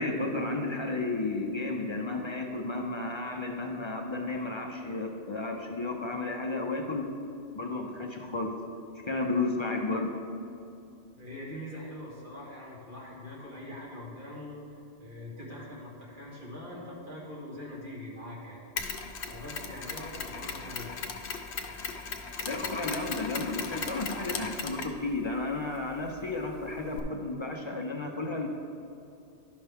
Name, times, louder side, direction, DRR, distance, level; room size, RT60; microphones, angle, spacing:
voice 1, 0.0-7.1 7.5-8.5 8.9-10.1 22.5-28.5, left 2 dB, 35° left, 1 dB, 0.5 m, -32 dB
voice 2, 11.2-18.6 19.3-20.9, left 1 dB, 50° right, -6 dB, 1.8 m, -43 dB
Mechanisms, 18.8-27.0, left 5 dB, 70° left, 0.9 m, -38 dB
11.5 x 5.5 x 3.5 m, 2.5 s
omnidirectional pair, 1.2 m